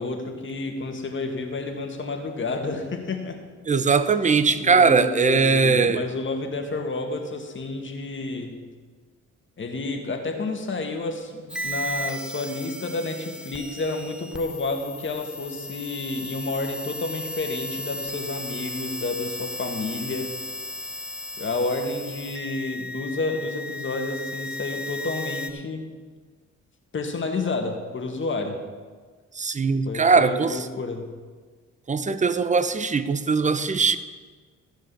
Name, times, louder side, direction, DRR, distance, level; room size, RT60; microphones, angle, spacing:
voice 1, 0.0-3.4 4.6-8.6 9.6-20.4 21.4-25.9 26.9-28.7 29.9-31.1, left 3 dB, 40° left, 1.9 m, -30 dB
voice 2, 3.7-6.0 29.4-30.7 31.9-34.0, right 4 dB, 25° right, 0.8 m, -20 dB
sound 1, 11.5-25.5, left 1 dB, 5° right, 1.0 m, -35 dB
14.5 x 5.1 x 8.4 m
cardioid pair, 90°, 30 cm